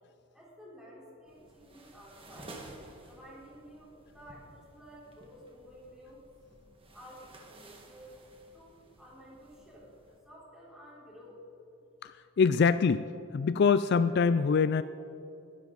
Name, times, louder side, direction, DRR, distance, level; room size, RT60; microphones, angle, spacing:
voice 1, 0.3-2.5 3.0-6.2 6.9-8.2 8.5-9.9 10.2-11.5, equal, 5° right, -6 dB, 4.1 m, -52 dB
sound 1, 1.3-10.2, right 2 dB, 25° right, 1.8 m, -53 dB
voice 2, 12.0-13.1 13.3-14.8, left 5 dB, 50° left, 13 dB, 0.3 m, -24 dB
21.5 x 12.0 x 4.0 m, 2.8 s
head